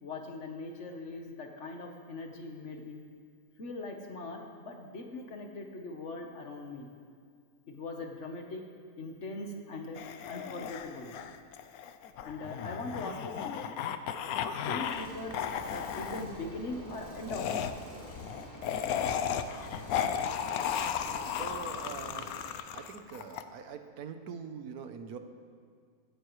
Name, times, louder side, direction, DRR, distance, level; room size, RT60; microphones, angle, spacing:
voice 1, 0.0-3.0 3.6-6.9 7.7-8.7 9.0-11.2 12.2-13.8 14.6-17.6, left 2 dB, 55° left, 3 dB, 1.4 m, -41 dB
sound 1, 10.0-15.1 15.3-16.2 17.3-23.4, left 8 dB, 75° left, 1.1 m, -35 dB
sound 2, 14.8-22.5, equal, 15° left, 2.0 m, -47 dB
voice 2, 21.2-22.4 22.7-25.2, right 6 dB, 80° right, 7 dB, 1.3 m, -43 dB
15.0 x 14.5 x 3.2 m, 2.1 s
omnidirectional pair, 1.6 m